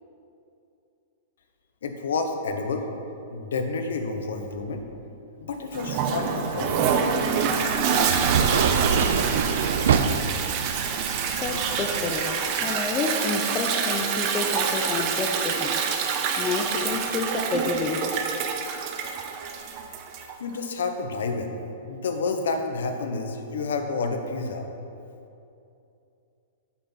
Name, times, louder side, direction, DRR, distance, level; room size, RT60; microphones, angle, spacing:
voice 1, 1.8-2.9 3.3-4.8 5.4-6.8 20.4-21.6 21.8-24.6, left 4 dB, 85° left, 5 dB, 1.0 m, -29 dB
Toilet flush, 5.7-20.4, right 6 dB, 35° right, 0.7 m, -27 dB
sound 1, 6.6-12.1, right 6 dB, 75° right, 0.5 m, -26 dB
voice 2, 11.4-15.8 16.4-18.1, left 4 dB, 20° left, 3 dB, 0.6 m, -29 dB
8.4 x 6.0 x 5.7 m, 2.7 s
hypercardioid pair, 160°, 0 cm